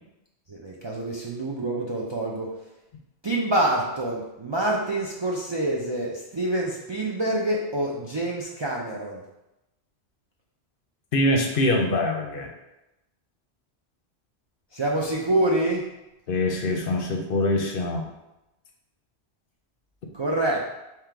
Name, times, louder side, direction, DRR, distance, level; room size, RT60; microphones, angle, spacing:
voice 1, 0.5-2.5 3.2-9.2 14.7-15.9 20.1-20.7, right 1 dB, 45° right, -3 dB, 0.3 m, -26 dB
voice 2, 11.1-12.5 16.3-18.0, left 1 dB, 60° left, 2 dB, 0.8 m, -24 dB
3.7 x 3.0 x 4.5 m, 0.95 s
omnidirectional pair, 1.1 m